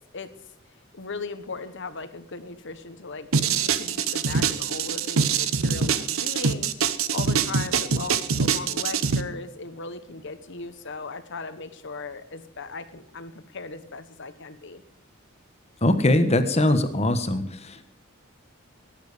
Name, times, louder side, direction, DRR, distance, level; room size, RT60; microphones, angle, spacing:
voice 1, 0.9-14.8, left 3 dB, 60° left, 11 dB, 1.3 m, -38 dB
sound 1, 3.3-9.2, right 6 dB, 75° right, 0.9 m, -24 dB
voice 2, 15.8-17.8, left 1 dB, 30° left, 9 dB, 1.4 m, -21 dB
19.0 x 9.0 x 5.1 m, 0.76 s
head